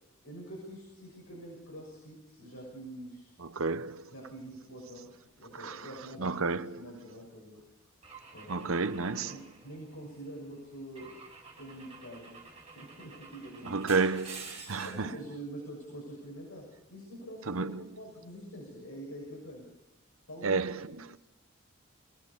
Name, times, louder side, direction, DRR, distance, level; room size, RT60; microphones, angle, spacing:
voice 1, 0.2-3.4 4.1-5.1 5.4-7.6 8.3-8.8 9.1-11.2 11.6-12.4 12.7-13.9 14.8-19.7 20.3-21.0, right 1 dB, 75° left, 6.7 m, -46 dB
voice 2, 3.4-4.1 5.6-5.9 6.2-6.8 8.5-9.4 13.7-15.1 17.5-17.8 20.4-21.2, right 4 dB, 80° right, 0.9 m, -31 dB
Car / Engine / Glass, 8.0-10.2 10.9-15.1, right 4 dB, 25° right, 5.3 m, -49 dB
24.0 x 17.0 x 7.0 m
head